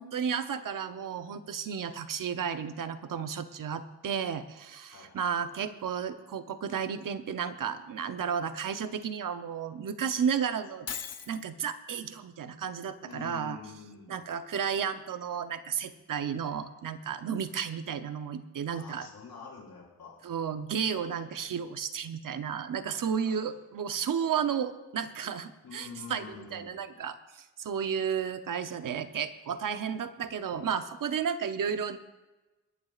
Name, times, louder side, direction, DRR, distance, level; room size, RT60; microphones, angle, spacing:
voice 1, 0.0-10.9 11.3-13.6 14.1-19.1 20.2-26.2 26.5-32.0, right 7 dB, 60° right, 10 dB, 0.8 m, -33 dB
voice 2, 4.9-5.6 13.0-14.2 18.7-20.2 22.8-23.4 25.6-26.8, left 5 dB, 80° left, -9 dB, 4.4 m, -47 dB
Shatter, 10.9-11.4, left 7 dB, 45° left, 0.6 m, -37 dB
28.0 x 11.0 x 2.4 m, 1.1 s
wide cardioid pair, 180°, 38 cm